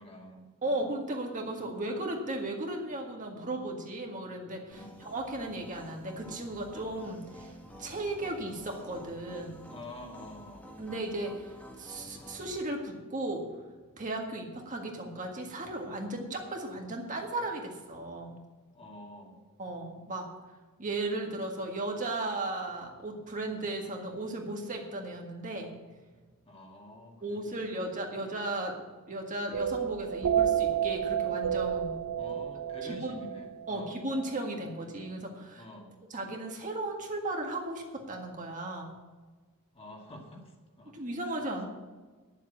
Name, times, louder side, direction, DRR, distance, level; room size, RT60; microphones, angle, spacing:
voice 1, 0.0-0.8 4.7-5.0 9.7-10.7 18.7-19.4 26.5-28.2 32.2-34.0 35.6-35.9 39.7-41.4, left 1 dB, 25° left, 0 dB, 2.0 m, -49 dB
voice 2, 0.6-7.5 7.8-9.6 10.8-13.4 14.0-18.4 19.6-20.3 20.8-25.7 27.2-28.8 29.1-32.0 32.9-33.2 33.7-35.6 36.1-38.9 40.9-41.6, right 2 dB, 35° right, 1 dB, 1.8 m, -36 dB
sound 1, 4.7-12.6, equal, 5° left, 1.4 m, -50 dB
sound 2, 29.5-34.4, right 9 dB, 80° right, 0.5 m, -30 dB
10.5 x 7.5 x 8.1 m, 1.3 s
head